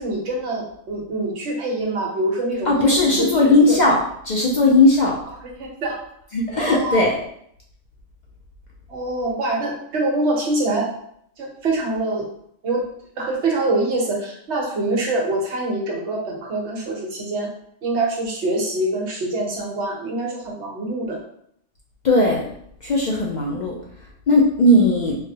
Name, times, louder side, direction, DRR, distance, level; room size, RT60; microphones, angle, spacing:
voice 1, 0.0-3.8 5.4-6.0 6.6-7.1 8.9-10.9 11.4-12.3 12.6-12.8 13.2-17.5 17.8-21.2, right 2 dB, 65° right, -2 dB, 1.1 m, -25 dB
voice 2, 2.7-4.0 4.2-5.2 6.3-7.2 22.0-22.5 22.8-23.7 24.3-25.2, left 2 dB, 65° left, -3 dB, 0.4 m, -17 dB
3.9 x 2.1 x 2.7 m, 0.69 s
omnidirectional pair, 1.3 m